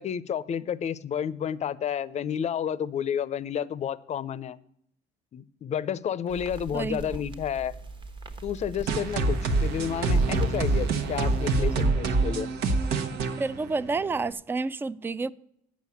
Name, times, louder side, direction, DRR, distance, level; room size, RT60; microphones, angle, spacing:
voice 1, 0.0-4.6 5.3-7.7 8.4-12.5, left 8 dB, 40° left, 0.5 m, -31 dB
sound 1, 6.3-11.9, right 3 dB, 30° right, 1.1 m, -41 dB
voice 2, 6.7-7.1 13.4-15.3, right 3 dB, 15° right, 0.3 m, -29 dB
sound 2, 8.9-14.3, right 3 dB, 80° right, 1.2 m, -26 dB
8.4 x 6.3 x 8.3 m
cardioid pair, 110°, 17 cm